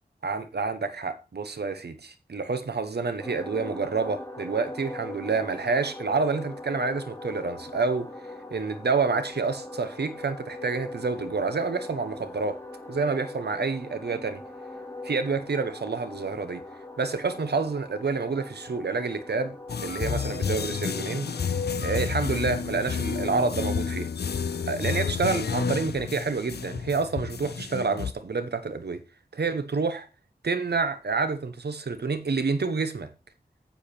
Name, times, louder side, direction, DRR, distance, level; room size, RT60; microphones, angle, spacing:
voice 1, 0.2-8.1 8.5-12.6 12.9-14.4 15.0-16.6 17.0-19.5 19.8-21.3 21.8-24.1 24.7-29.0 29.3-30.1 30.4-33.1, right 4 dB, 85° right, 1.1 m, -28 dB
sound 1, 3.2-21.8, left 2 dB, 15° left, 2.7 m, -41 dB
sound 2, 19.7-28.1, left 6 dB, 90° left, 0.5 m, -30 dB
10.5 x 7.2 x 4.4 m
wide cardioid pair, 65°, 17 cm